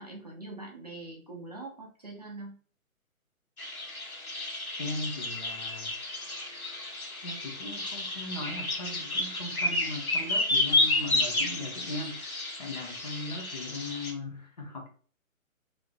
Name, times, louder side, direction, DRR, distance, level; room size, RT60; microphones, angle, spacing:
voice 1, 0.0-2.6, right 2 dB, 30° right, -1 dB, 0.5 m, -43 dB
sound 1, 3.6-14.1, left 2 dB, 80° left, 1.2 m, -31 dB
voice 2, 4.8-5.9 7.2-12.2 12.6-14.9, left 2 dB, 30° left, 1 dB, 0.6 m, -38 dB
3.1 x 2.6 x 3.2 m, 0.43 s
figure-of-eight pair, 140°, 42 cm